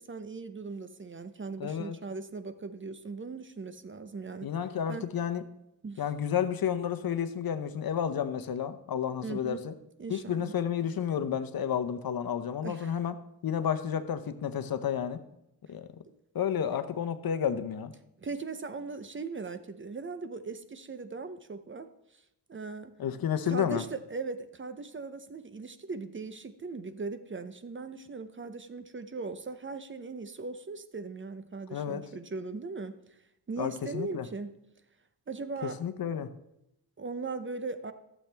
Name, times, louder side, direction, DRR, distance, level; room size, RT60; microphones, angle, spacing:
voice 1, 0.0-4.5 4.9-5.1 5.8-6.0 9.2-9.6 10.0-10.5 12.6-13.0 16.1-16.2 18.2-22.2 22.5-22.9 23.5-33.2 33.5-34.5 35.3-35.8 37.0-37.9, right 4 dB, 30° right, 11 dB, 0.7 m, -39 dB
voice 2, 1.6-2.0 4.4-5.4 6.0-9.7 10.1-13.1 13.4-15.2 15.7-15.9 16.3-17.9 23.0-23.8 31.7-32.0 33.6-34.3 35.6-36.3, left 8 dB, 60° left, 10 dB, 0.9 m, -31 dB
14.5 x 7.5 x 3.4 m, 0.84 s
cardioid pair, 100°, 41 cm